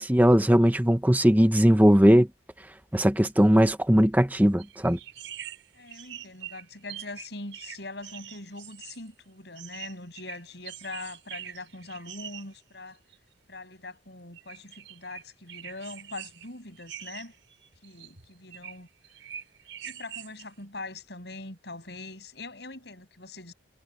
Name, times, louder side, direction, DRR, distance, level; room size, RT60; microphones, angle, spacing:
voice 1, 0.0-2.3 2.9-5.0, equal, 10° right, 1.0 m, -19 dB
sound 1, 4.6-9.1 9.6-12.6 13.1-13.2 14.4-15.2 15.5-16.5 16.8-18.8 19.0-20.5, right 10 dB, 80° right, 5.6 m, -44 dB
voice 2, 5.7-13.0 13.5-17.3 17.8-18.9 19.8-23.5, left 2 dB, 60° left, 7.4 m, -42 dB
head